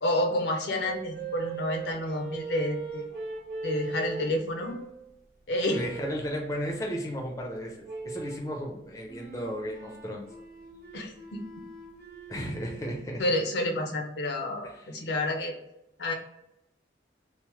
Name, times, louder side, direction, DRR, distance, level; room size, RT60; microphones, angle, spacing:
voice 1, 0.0-3.1 3.6-4.8 5.5-5.8 10.9-11.4 13.2-15.6 16.0-16.1, left 1 dB, 80° left, 3 dB, 0.6 m, -29 dB
sound 1, 0.8-5.0 5.6-6.2 7.8-8.5 9.1-13.0, right 4 dB, 70° right, 1.0 m, -40 dB
voice 2, 5.7-10.3 12.3-13.2 14.6-14.9, equal, 20° left, 0 dB, 0.5 m, -34 dB
3.0 x 2.0 x 3.1 m, 0.85 s
head